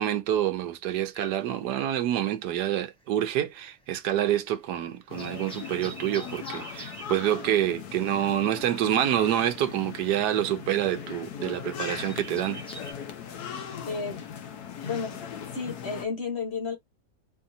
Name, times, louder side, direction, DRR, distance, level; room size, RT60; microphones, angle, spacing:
voice 1, 0.0-12.6, right 11 dB, 80° right, 1.2 m, -27 dB
sound 1, 1.1-2.6 2.8-12.9, right 2 dB, 5° left, 0.8 m, -47 dB
sound 2, 5.1-16.1, left 8 dB, 70° left, 1.2 m, -39 dB
voice 2, 13.9-14.2 14.8-15.2 15.5-16.7, left 4 dB, 45° left, 1.2 m, -32 dB
4.6 x 2.7 x 2.6 m
omnidirectional pair, 1.8 m